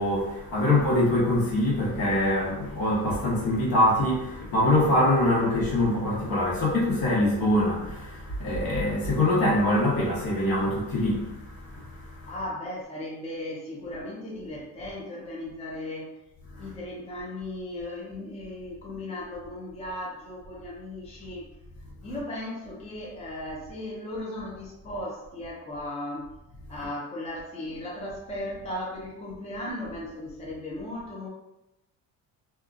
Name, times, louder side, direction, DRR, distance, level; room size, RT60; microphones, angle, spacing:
voice 1, 0.0-12.4 16.5-16.7 22.1-22.2, left 1 dB, 65° left, 1.2 m, -24 dB
voice 2, 12.3-16.1 16.6-21.5 22.0-26.3 26.7-31.3, left 1 dB, 15° left, 0.5 m, -36 dB
2.8 x 2.3 x 2.5 m
cardioid pair, 115°, 38 cm